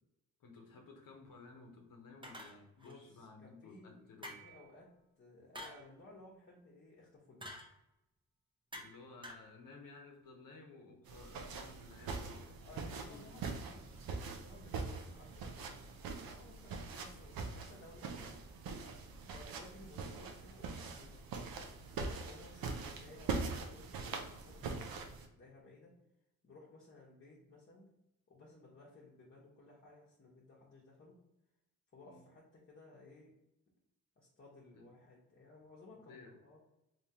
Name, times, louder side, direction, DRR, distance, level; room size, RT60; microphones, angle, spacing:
voice 1, 0.4-4.4 8.8-12.6 12.9-13.5 32.0-32.2 34.7-34.9 36.1-36.4, left 3 dB, 70° left, 1 dB, 0.8 m, -56 dB
sound 1, 2.2-2.9 4.2-4.7 5.5-5.9 7.4-7.7 8.7-9.0 9.2-9.5, equal, 15° right, 0.6 m, -48 dB
voice 2, 2.7-7.5 12.6-18.4 19.2-21.2 21.9-26.0 26.4-27.9 28.3-31.2 31.9-33.3 34.2-36.6, left 2 dB, 35° left, -4 dB, 0.9 m, -58 dB
sound 2, 11.1-25.3, right 4 dB, 90° right, 0.6 m, -43 dB
3.5 x 2.8 x 2.8 m, 0.88 s
cardioid pair, 80°, 35 cm